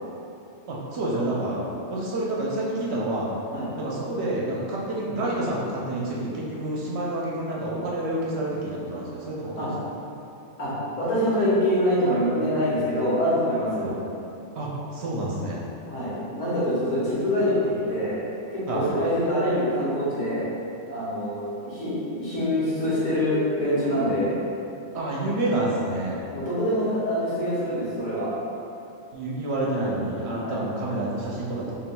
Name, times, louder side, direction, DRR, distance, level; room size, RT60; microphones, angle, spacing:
voice 1, 0.7-1.6 1.9-3.3 3.7-9.7 13.8-13.9 14.5-15.6 18.7-18.9 24.9-26.2 29.1-31.7, right 1 dB, 60° right, -4 dB, 0.8 m, -28 dB
voice 2, 10.6-13.9 15.9-18.2 18.5-20.4 20.8-24.3 26.3-28.3 30.4-30.6, equal, 85° left, -9 dB, 1.6 m, -25 dB
4.2 x 3.7 x 2.2 m, 2.7 s
omnidirectional pair, 1.4 m